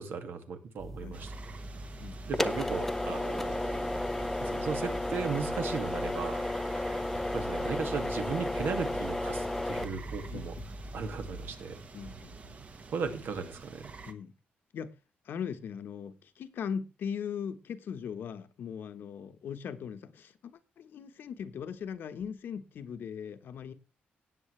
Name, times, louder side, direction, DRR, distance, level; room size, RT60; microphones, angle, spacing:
voice 1, 0.0-1.3 2.3-3.9 4.4-6.4 7.3-10.6 10.9-11.8 12.9-13.9, right 5 dB, 65° right, 7 dB, 2.0 m, -36 dB
sound 1, 0.8-11.5, left 1 dB, 10° left, 0.6 m, -34 dB
sound 2, 1.1-14.1, right 4 dB, 40° right, 1.3 m, -47 dB
voice 2, 10.3-10.6 11.9-12.6 14.1-14.3 14.7-14.9 15.2-23.7, left 7 dB, 65° left, 10 dB, 1.1 m, -39 dB
17.5 x 7.7 x 3.3 m, 0.29 s
cardioid pair, 140°, 4 cm